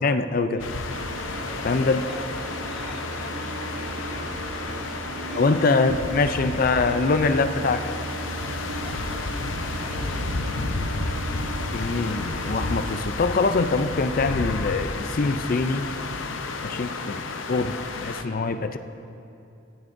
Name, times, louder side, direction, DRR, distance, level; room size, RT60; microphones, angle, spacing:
voice 1, 0.0-0.6 1.6-2.0 5.3-8.0 11.7-15.9 16.6-17.2 17.5-18.8, left 3 dB, 45° left, 10 dB, 0.4 m, -23 dB
sound 1, 0.6-18.2, left 3 dB, 80° left, 0.7 m, -32 dB
sound 2, 0.6-17.1, right 1 dB, 15° left, 2.2 m, -42 dB
sound 3, 0.9-13.0, right 3 dB, 60° right, 0.6 m, -38 dB
voice 2, 1.4-6.6 8.8-11.0 16.7-17.0, equal, 5° right, -8 dB, 2.3 m, -44 dB
18.0 x 11.0 x 2.6 m, 2.7 s
head